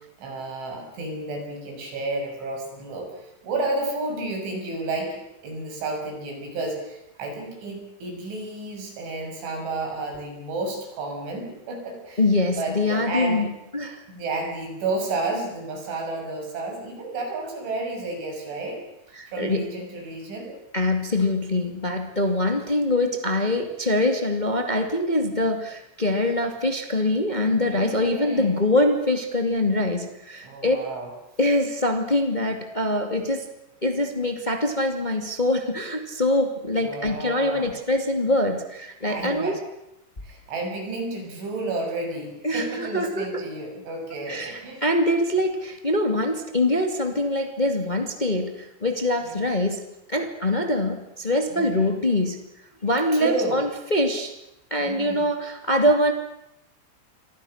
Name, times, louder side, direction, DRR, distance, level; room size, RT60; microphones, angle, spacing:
voice 1, 0.2-12.2 12.6-13.4 14.1-18.8 19.3-20.6 27.7-28.5 30.4-31.1 36.8-37.7 39.0-39.6 40.2-44.8 49.3-49.5 51.5-51.9 53.1-53.6 54.8-55.3, right 2 dB, 65° right, 2 dB, 9.1 m, -31 dB
voice 2, 12.2-14.0 19.1-19.7 20.7-30.8 31.4-33.5 33.8-39.6 42.4-43.4 44.3-49.8 50.1-52.4 52.8-54.3 54.7-56.1, left 1 dB, 60° left, 5 dB, 0.4 m, -24 dB
29.5 x 24.5 x 6.6 m, 0.88 s
omnidirectional pair, 5.8 m